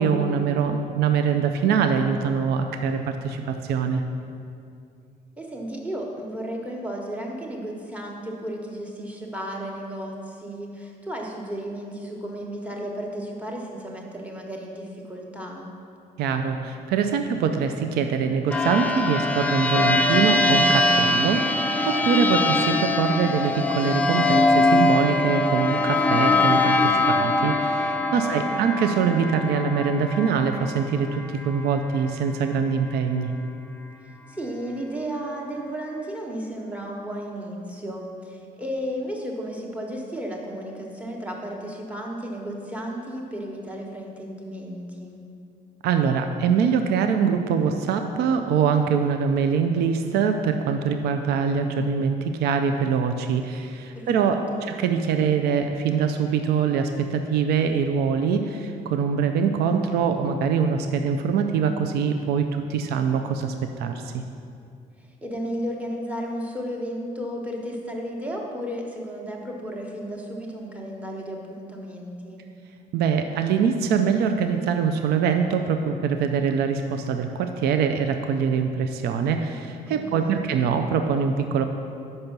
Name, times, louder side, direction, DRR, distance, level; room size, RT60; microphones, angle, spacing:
voice 1, 0.0-4.0 16.2-33.3 45.8-64.1 72.9-81.6, right 6 dB, 70° right, 7 dB, 0.4 m, -23 dB
voice 2, 5.4-15.7 28.2-28.7 34.3-45.2 53.9-54.6 65.2-72.4 79.9-80.6, equal, 10° right, -1 dB, 1.0 m, -34 dB
sound 1, 18.5-31.7, left 2 dB, 10° left, 0.4 m, -22 dB
5.4 x 5.2 x 5.8 m, 2.5 s
cardioid pair, 110°, 17 cm